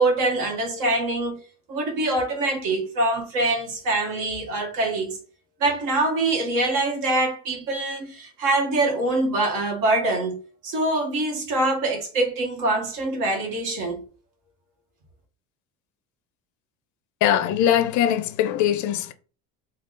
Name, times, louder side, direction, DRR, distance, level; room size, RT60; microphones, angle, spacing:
voice 1, 0.0-1.4 1.7-5.2 5.6-14.0, right 2 dB, 55° right, 1.4 m, -24 dB
voice 2, 17.2-19.1, left 10 dB, 50° left, 0.5 m, -21 dB
3.5 x 2.3 x 3.8 m
cardioid pair, 140°, 39 cm